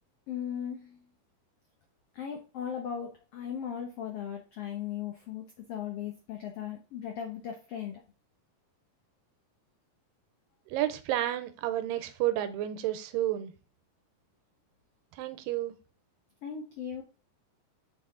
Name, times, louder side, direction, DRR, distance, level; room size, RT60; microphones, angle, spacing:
voice 1, 0.3-1.0 2.1-8.0 16.4-17.0, left 8 dB, 85° left, 3 dB, 1.3 m, -37 dB
voice 2, 10.7-13.5 15.1-15.7, right 13 dB, 90° right, 11 dB, 2.4 m, -31 dB
6.6 x 4.7 x 3.7 m, 0.34 s
omnidirectional pair, 3.9 m